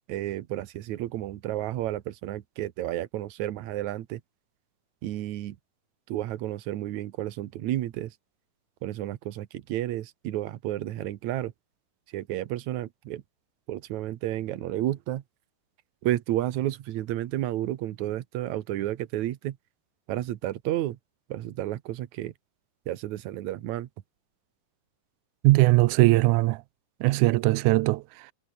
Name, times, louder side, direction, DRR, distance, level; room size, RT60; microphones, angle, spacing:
voice 1, 0.1-4.2 5.0-5.6 6.1-8.1 8.8-11.5 12.1-13.2 13.7-15.2 16.0-19.6 20.1-21.0 21.3-22.3 22.9-23.9, right 14 dB, 65° right, 2.1 m, -31 dB
voice 2, 25.4-26.6 27.0-28.3, right 19 dB, 85° right, 1.7 m, -20 dB
omnidirectional pair, 4.1 m